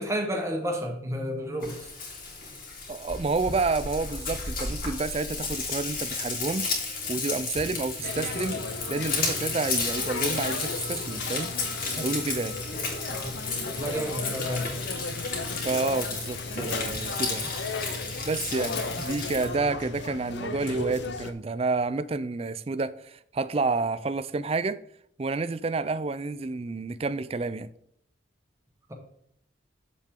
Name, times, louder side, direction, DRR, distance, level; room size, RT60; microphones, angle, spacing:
voice 1, 0.0-1.9 12.8-13.3 13.6-14.8, equal, 15° right, 1.3 m, -31 dB
Frying (food), 1.6-19.5, left 4 dB, 45° left, 2.6 m, -33 dB
voice 2, 2.9-8.6 8.9-11.5 12.0-12.6 15.6-17.5 18.2-24.8 25.2-27.7, right 3 dB, 30° right, 0.4 m, -29 dB
Fast Food Restaurant, 8.0-21.3, left 3 dB, 65° left, 0.7 m, -35 dB
8.4 x 7.3 x 3.7 m
head